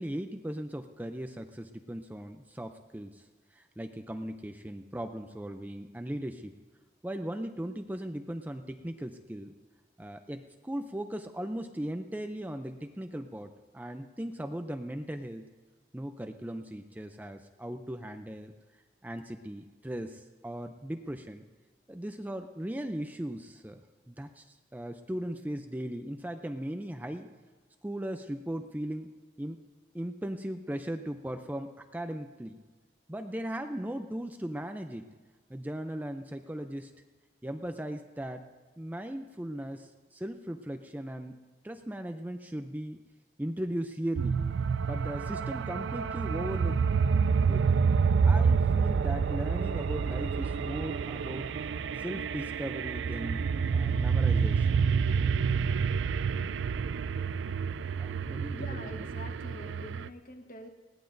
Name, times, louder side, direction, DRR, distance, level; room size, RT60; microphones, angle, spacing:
voice 1, 0.0-6.5 7.0-9.5 10.0-15.5 15.9-18.5 19.0-21.4 21.9-27.3 27.8-29.1 29.4-29.6 29.9-32.6 33.1-35.1 35.5-36.9 37.4-38.5 38.8-41.4 41.6-43.0 43.4-44.4 44.8-46.8 47.5-47.7 48.2-51.5 52.0-54.9 58.0-59.1, right 1 dB, 10° right, 7 dB, 0.4 m, -38 dB
sound 1, 44.2-60.1, right 5 dB, 75° right, 0.3 m, -28 dB
voice 2, 58.5-60.7, left 1 dB, 45° left, 4 dB, 1.2 m, -45 dB
20.0 x 16.0 x 2.6 m, 1.3 s
head